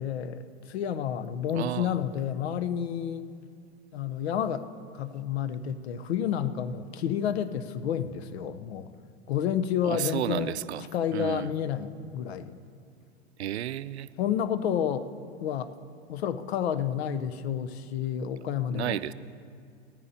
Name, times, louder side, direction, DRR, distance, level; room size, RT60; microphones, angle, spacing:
voice 1, 0.0-3.3 3.9-4.7 4.9-8.9 9.3-10.6 10.9-12.6 14.2-15.1 15.4-15.7 16.1-19.0, left 9 dB, 75° left, 13 dB, 0.8 m, -30 dB
voice 2, 1.5-2.1 9.8-10.9 11.1-11.5 13.4-14.1 18.7-19.1, right 12 dB, 85° right, 16 dB, 0.5 m, -32 dB
18.0 x 14.5 x 2.8 m, 2.2 s
hypercardioid pair, 100°, 32 cm